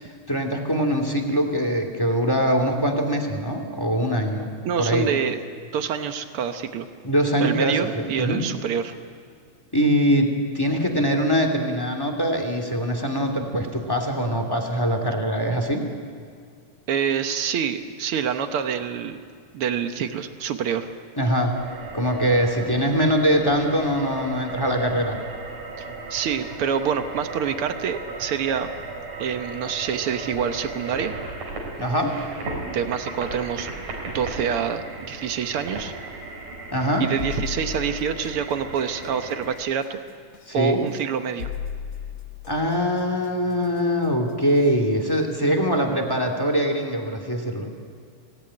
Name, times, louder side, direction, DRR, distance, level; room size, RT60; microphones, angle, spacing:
voice 1, 0.3-4.5 4.8-5.1 7.0-8.4 9.7-15.9 21.2-21.6 21.9-25.2 31.8-32.2 36.7-37.1 40.5-40.8 42.5-47.7, equal, 10° left, 4 dB, 2.2 m, -23 dB
voice 2, 4.6-5.4 5.7-6.9 7.4-8.9 16.9-19.2 19.5-20.9 25.8-28.7 29.2-31.1 32.7-33.7 34.1-35.9 37.0-40.0 40.5-41.5 45.8-45.9, right 7 dB, 70° right, 7 dB, 1.3 m, -26 dB
sound 1, 21.6-39.6, right 3 dB, 85° right, 5.6 m, -36 dB
sound 2, 37.2-38.5 40.3-40.5 41.4-42.7 44.5-44.7 45.2-45.3, left 8 dB, 50° left, 1.6 m, -34 dB
25.5 x 18.0 x 9.9 m, 2.1 s
omnidirectional pair, 3.9 m